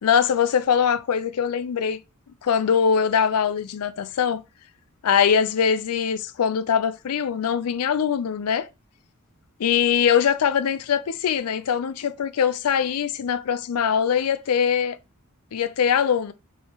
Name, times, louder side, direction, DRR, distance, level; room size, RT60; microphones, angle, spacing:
voice 1, 0.0-2.0 2.4-4.4 5.0-8.7 9.6-15.0 15.5-16.3, left 7 dB, 90° left, 0.4 m, -22 dB
4.5 x 3.4 x 2.9 m
head